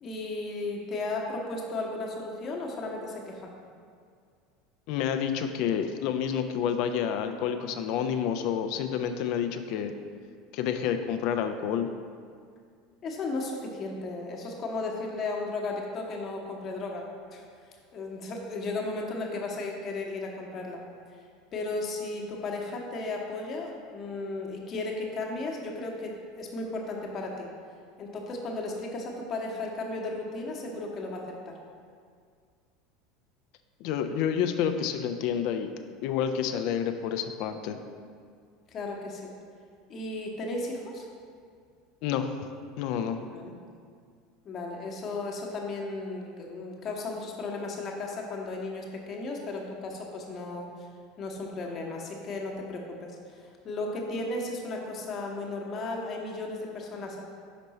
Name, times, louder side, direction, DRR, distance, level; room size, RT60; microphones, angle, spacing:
voice 1, 0.0-3.5 13.0-17.0 17.3-17.4 17.9-20.8 21.5-27.5 28.0-31.6 38.7-39.3 39.9-41.1 43.2-43.5 44.4-50.9 51.2-57.2, left 2 dB, 40° left, 0 dB, 1.0 m, -35 dB
voice 2, 4.9-9.9 10.5-11.9 33.8-35.7 36.0-37.8 42.0-42.3 42.8-43.2, left 8 dB, 55° left, 8 dB, 0.4 m, -29 dB
5.4 x 5.2 x 4.1 m, 2.1 s
figure-of-eight pair, 75°, 0 cm